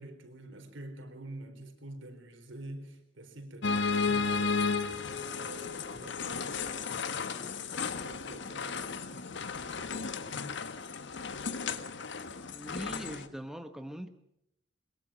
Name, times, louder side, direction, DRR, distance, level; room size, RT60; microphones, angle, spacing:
voice 1, 0.0-4.8 5.3-10.6, right 1 dB, 75° right, 7 dB, 4.2 m, -48 dB
sound of ..., 3.6-13.3, left 4 dB, 65° left, 1.4 m, -34 dB
voice 2, 12.4-14.1, equal, ahead, 7 dB, 1.1 m, -42 dB
22.5 x 22.0 x 6.3 m, 0.77 s
head